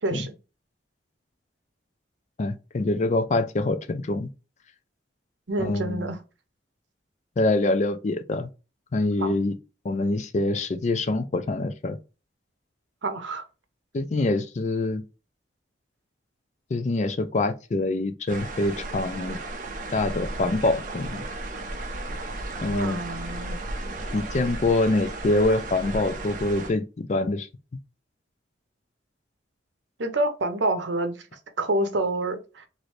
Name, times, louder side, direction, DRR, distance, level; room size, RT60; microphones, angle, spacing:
voice 1, 0.0-0.3 5.5-6.2 9.2-9.3 13.0-13.4 22.7-23.6 30.0-31.2 31.6-32.7, right 2 dB, 80° right, 0.7 m, -27 dB
voice 2, 2.4-4.3 5.6-6.1 7.4-8.5 8.9-9.6 9.8-12.0 13.9-15.0 16.7-19.4 19.9-21.2 22.6-23.0 24.1-27.5, left 2 dB, 40° left, 0.4 m, -25 dB
sound 1, 18.3-26.7, right 2 dB, 45° right, 0.5 m, -34 dB
3.0 x 2.6 x 3.1 m
head